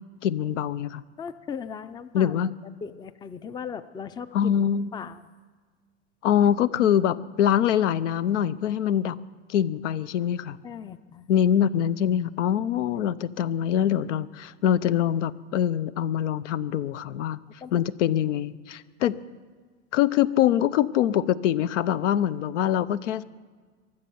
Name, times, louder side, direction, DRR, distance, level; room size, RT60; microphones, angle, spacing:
voice 1, 0.2-1.0 2.1-2.5 4.3-4.9 6.2-9.2 9.5-10.6 11.3-17.4 17.7-19.2 19.9-23.2, left 10 dB, 85° left, 16 dB, 0.7 m, -24 dB
voice 2, 1.2-2.3 2.8-5.3 10.6-11.3 17.6-17.8, left 6 dB, 10° left, 14 dB, 0.4 m, -38 dB
23.0 x 7.8 x 7.0 m, 1.5 s
supercardioid pair, 115°, 36 cm